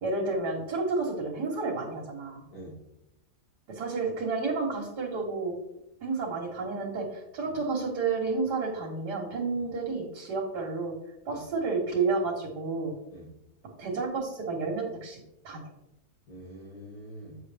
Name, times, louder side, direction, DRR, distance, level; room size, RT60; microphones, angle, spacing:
voice 1, 0.0-2.4 3.7-5.5 6.0-10.9 11.3-12.9 13.8-15.7, right 4 dB, 80° right, -2 dB, 1.8 m, -31 dB
voice 2, 16.3-17.4, equal, 75° left, -10 dB, 3.1 m, -45 dB
7.9 x 6.2 x 3.4 m, 0.88 s
omnidirectional pair, 1.7 m